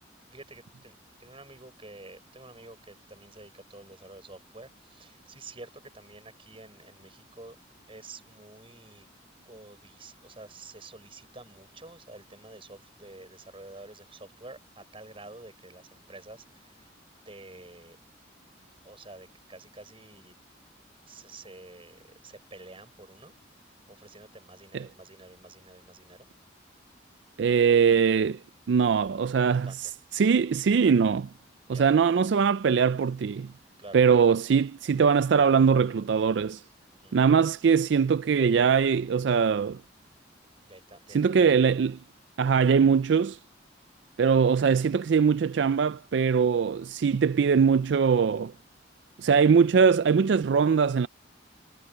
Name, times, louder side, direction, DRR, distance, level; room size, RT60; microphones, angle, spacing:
voice 1, 0.3-0.9 1.2-7.6 7.9-9.1 9.4-16.9 17.2-18.0 18.8-20.3 21.1-23.4 23.9-26.3 29.4-29.9 31.7-31.9 33.8-34.0 37.0-37.2 40.6-41.5, right 2 dB, 30° right, 6.4 m, -49 dB
voice 2, 27.4-28.4 28.7-31.3 31.7-33.5 33.9-36.6 37.1-39.8 41.1-42.0 42.4-43.4 44.2-48.5 49.2-51.1, right 6 dB, 70° right, 0.4 m, -22 dB
head